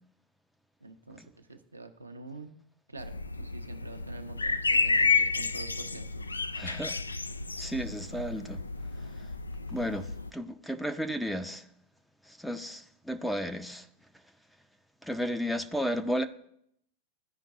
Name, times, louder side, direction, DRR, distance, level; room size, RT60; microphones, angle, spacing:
voice 1, 0.8-2.5 2.9-6.2, right 3 dB, 80° right, 0.7 m, -46 dB
sound 1, 3.0-10.3, left 4 dB, 80° left, 0.3 m, -31 dB
voice 2, 6.6-7.0 7.6-8.6 9.7-11.6 12.3-13.9 15.0-16.3, equal, ahead, 0.5 m, -33 dB
14.0 x 5.2 x 2.5 m
figure-of-eight pair, 90°, 0 cm